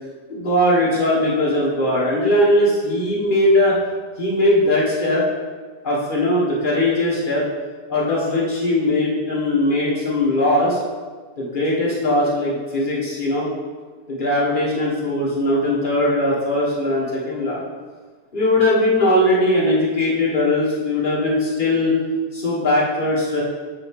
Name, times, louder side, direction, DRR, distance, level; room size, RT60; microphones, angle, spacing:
voice 1, 0.3-3.8 4.2-5.2 5.8-7.4 7.9-10.8 11.4-13.5 14.1-17.6 18.3-22.0 22.3-23.4, left 1 dB, 45° left, -7 dB, 0.6 m, -19 dB
8.5 x 4.4 x 4.8 m, 1.4 s
omnidirectional pair, 3.5 m